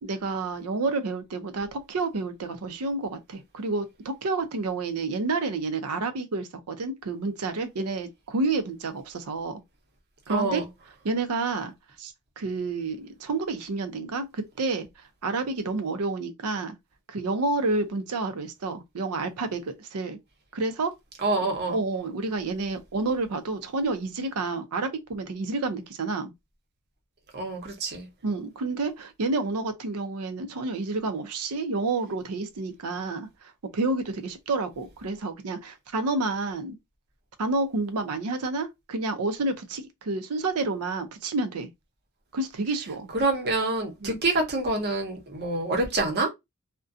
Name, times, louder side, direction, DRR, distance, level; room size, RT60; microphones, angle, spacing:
voice 1, 0.0-9.6 10.3-10.6 11.0-11.7 12.0-14.9 15.2-16.7 17.1-20.2 20.5-20.9 21.7-26.3 28.2-36.8 37.4-41.7 42.3-43.1 44.0-44.1, right 3 dB, 80° right, 0.5 m, -29 dB
voice 2, 10.3-10.7 21.2-21.8 27.3-28.1 43.1-46.3, right 2 dB, 50° right, 0.8 m, -26 dB
2.4 x 2.2 x 2.5 m
head